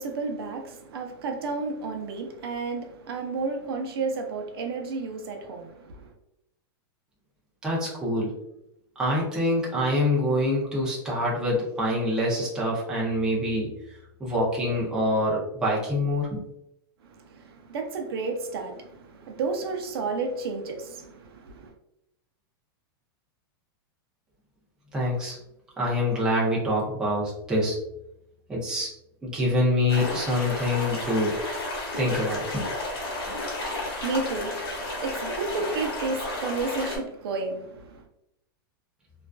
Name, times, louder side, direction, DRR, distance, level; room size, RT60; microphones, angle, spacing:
voice 1, 0.0-6.1 17.0-21.7 33.6-38.0, right 4 dB, 75° right, 0.5 m, -32 dB
voice 2, 7.6-8.3 9.0-13.7 14.2-16.4 24.9-25.4 25.8-27.8 28.5-28.9 29.2-31.3 32.0-32.6, left 1 dB, 5° right, 0.4 m, -25 dB
sound 1, 29.9-37.0, left 2 dB, 80° left, 1.0 m, -32 dB
2.4 x 2.3 x 2.2 m
supercardioid pair, 165°, 13 cm